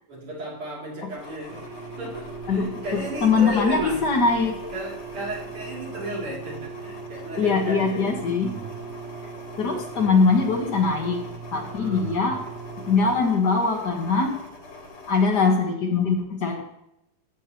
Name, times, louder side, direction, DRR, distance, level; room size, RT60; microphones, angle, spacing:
voice 1, 0.1-1.6 2.0-4.3 4.7-8.7 9.9-10.4 11.8-12.3, right 1 dB, 85° right, -5 dB, 3.9 m, -34 dB
sound 1, 1.1-15.5, left 3 dB, 35° left, 1.5 m, -44 dB
sound 2, 1.5-13.2, right 6 dB, 55° right, 1.4 m, -39 dB
voice 2, 2.5-4.6 7.4-8.5 9.6-11.2 11.5-12.4 12.9-14.4 15.1-16.6, left 4 dB, 55° left, 1 dB, 1.8 m, -22 dB
14.5 x 8.4 x 3.0 m, 0.82 s
omnidirectional pair, 2.4 m